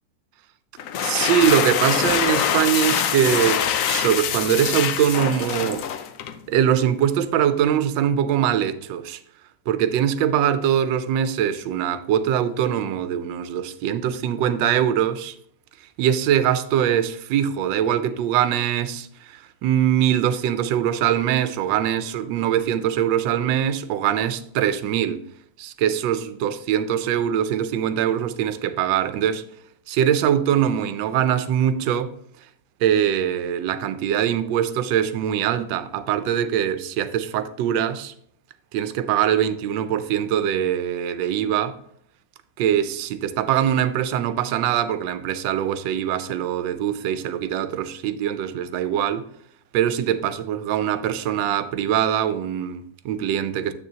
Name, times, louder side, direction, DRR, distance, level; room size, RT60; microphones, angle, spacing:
sound 1, 0.8-6.4, left 9 dB, 75° left, 0.7 m, -24 dB
voice 1, 1.0-5.9 6.5-9.2 9.7-15.3 16.0-25.3 25.6-29.4 29.9-32.1 32.8-38.1 38.7-41.8 42.6-49.3 49.7-53.7, right 10 dB, 80° right, 1.3 m, -22 dB
7.8 x 6.6 x 2.8 m
omnidirectional pair, 2.0 m